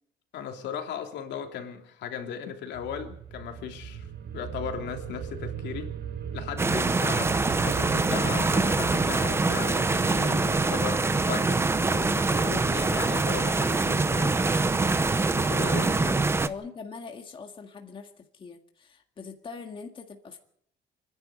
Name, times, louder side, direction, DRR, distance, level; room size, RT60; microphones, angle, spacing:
voice 1, 0.3-4.1 4.3-5.9 6.3-7.4 7.6-14.4 15.3-16.2, left 8 dB, 70° left, 3.2 m, -37 dB
sound 1, 2.7-10.2, right 8 dB, 65° right, 3.2 m, -38 dB
sound 2, 6.6-16.5, right 3 dB, 15° right, 0.8 m, -24 dB
voice 2, 6.7-7.0 15.5-20.4, left 5 dB, 30° left, 1.9 m, -43 dB
28.5 x 11.0 x 8.9 m
cardioid pair, 175°, 19 cm